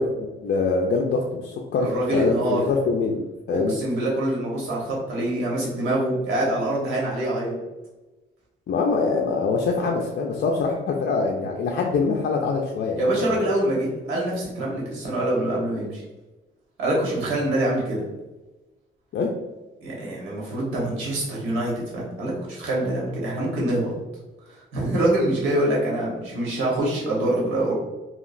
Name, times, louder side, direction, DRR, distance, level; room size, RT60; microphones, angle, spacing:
voice 1, 0.0-3.8 8.7-13.0 13.3-13.4 19.1-19.3, left 4 dB, 55° left, 0 dB, 0.5 m, -24 dB
voice 2, 1.8-2.6 3.5-7.6 13.0-16.0 16.8-18.0 19.8-23.9 24.7-27.7, right 1 dB, 90° right, -4 dB, 1.2 m, -25 dB
2.8 x 2.8 x 2.5 m, 1.1 s
cardioid pair, 90°, 20 cm